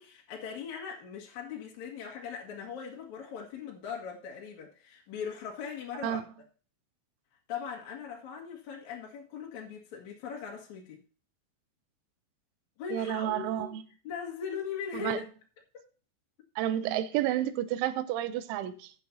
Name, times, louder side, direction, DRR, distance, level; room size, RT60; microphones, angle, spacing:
voice 1, 0.0-6.2 7.5-11.0 12.8-13.7 14.0-15.2 15.7-15.8, left 7 dB, 50° left, 2.4 m, -40 dB
voice 2, 12.9-13.8 14.9-15.3 16.6-18.9, right 12 dB, 80° right, 3.2 m, -31 dB
15.0 x 8.5 x 2.8 m
omnidirectional pair, 5.6 m